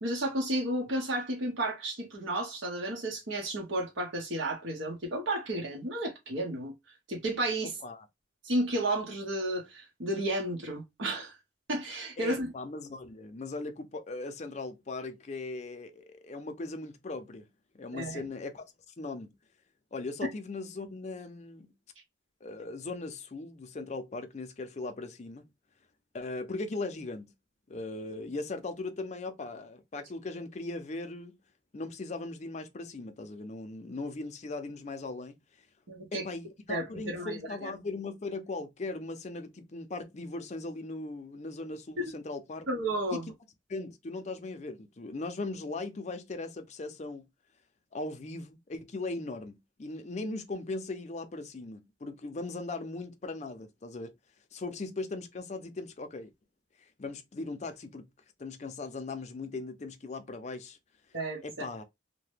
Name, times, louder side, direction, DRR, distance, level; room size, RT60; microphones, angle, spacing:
voice 1, 0.0-6.7 7.1-7.7 8.4-11.3 11.7-12.5 17.9-18.2 35.9-36.3 36.7-37.7 42.0-42.1 42.7-43.3 61.1-61.4, right 1 dB, 80° right, 0.9 m, -32 dB
voice 2, 12.2-17.5 17.7-18.6 19.0-19.3 19.9-21.7 22.4-25.4 26.1-27.3 27.7-31.4 31.7-35.4 36.1-42.7 43.1-43.2 43.7-47.3 47.9-54.1 54.5-56.3 57.0-58.1 58.4-60.8 61.4-61.8, left 3 dB, 35° left, 0.5 m, -39 dB
2.8 x 2.1 x 3.2 m
head